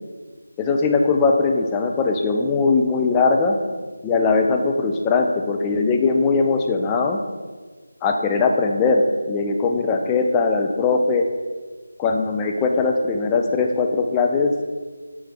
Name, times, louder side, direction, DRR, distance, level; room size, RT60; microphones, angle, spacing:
voice 1, 0.6-3.6 4.0-7.2 8.0-11.2 12.0-14.5, left 4 dB, 10° left, 3 dB, 0.4 m, -20 dB
9.3 x 3.1 x 3.5 m, 1.4 s
figure-of-eight pair, 170°, 0 cm